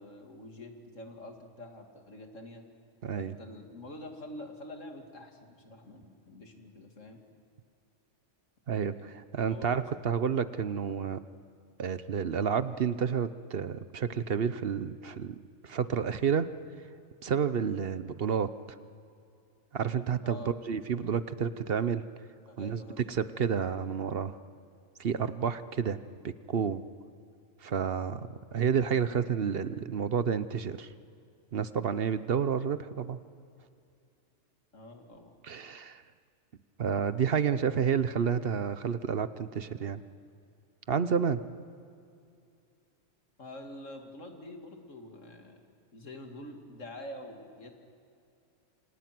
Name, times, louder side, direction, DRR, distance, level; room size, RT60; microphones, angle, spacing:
voice 1, 0.0-2.6 3.1-7.2 8.9-9.2 9.5-9.9 20.2-20.6 22.5-23.0 34.7-35.4 43.4-45.6 45.9-47.7, left 1 dB, 85° left, 3 dB, 2.8 m, -46 dB
voice 2, 3.0-3.4 8.7-11.2 11.8-15.4 15.6-16.5 17.2-18.5 19.7-22.0 22.6-22.8 23.1-24.4 25.0-26.8 27.6-30.9 31.5-33.2 35.4-36.0 36.8-40.0 40.9-41.4, right 7 dB, 55° right, 13 dB, 0.9 m, -30 dB
28.0 x 26.5 x 6.1 m, 2.5 s
omnidirectional pair, 1.3 m